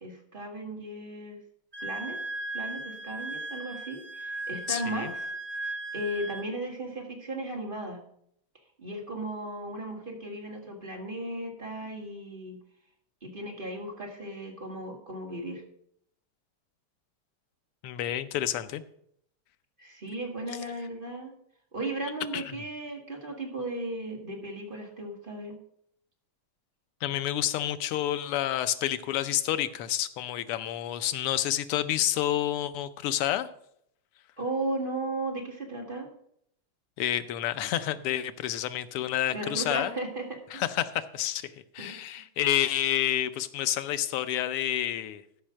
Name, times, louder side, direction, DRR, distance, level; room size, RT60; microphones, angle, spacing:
voice 1, 0.0-1.4 1.8-2.2 2.5-5.3 5.9-8.0 8.8-12.6 13.2-15.6 19.8-21.3 21.7-25.6 34.4-36.1 39.3-40.6 41.8-41.9, right 1 dB, 25° right, 0 dB, 2.0 m, -36 dB
Wind instrument woodwind instrument, 1.7-6.5, right 2 dB, 50° right, 0.5 m, -37 dB
voice 2, 4.7-5.1 17.8-18.8 22.3-22.6 27.0-33.5 37.0-39.9 40.5-41.5 41.7-45.2, left 12 dB, 90° left, 12 dB, 1.7 m, -29 dB
13.5 x 5.6 x 6.2 m, 0.70 s
omnidirectional pair, 2.4 m